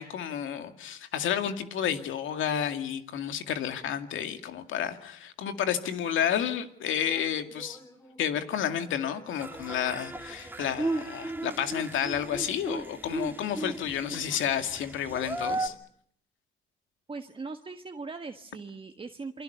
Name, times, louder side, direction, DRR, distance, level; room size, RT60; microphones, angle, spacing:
voice 1, 0.0-7.8 8.2-15.7, left 9 dB, 80° left, 7 dB, 2.2 m, -31 dB
sound 1, 6.8-15.8, equal, 15° left, 6.3 m, -55 dB
sound 2, 9.4-15.7, right 2 dB, 10° right, 2.4 m, -35 dB
voice 2, 17.1-19.4, right 4 dB, 25° right, 5 dB, 1.4 m, -40 dB
28.5 x 23.0 x 6.8 m, 0.64 s
cardioid pair, 90°, 20 cm